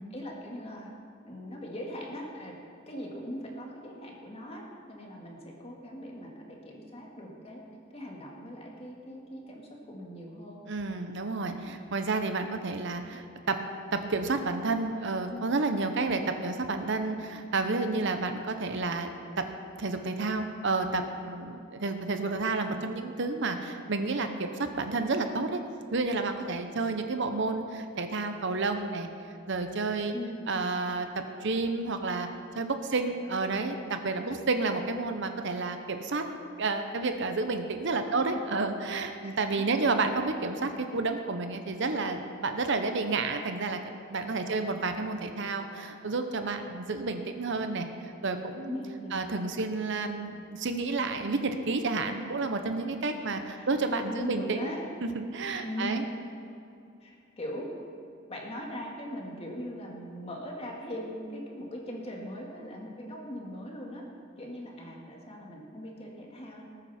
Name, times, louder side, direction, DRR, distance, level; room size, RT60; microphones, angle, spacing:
voice 1, 0.1-0.9 1.2-2.5 2.9-7.6 7.9-10.7 15.3-15.4 21.8-22.0 30.1-30.5 34.2-34.4 38.1-38.4 39.2-39.9 44.4-45.0 48.7-49.2 52.9-53.7 54.1-54.9 55.6-56.0 57.0-57.7 58.3-64.0 64.4-66.6, equal, 30° left, -1 dB, 2.1 m, -40 dB
voice 2, 10.7-13.6 13.9-19.1 19.8-25.6 25.9-29.1 29.5-30.1 30.5-32.3 32.5-36.2 36.6-47.9 48.2-48.8 49.1-54.7 55.0-56.0, right 3 dB, 60° right, 7 dB, 0.9 m, -30 dB
19.5 x 9.3 x 4.3 m, 2.6 s
head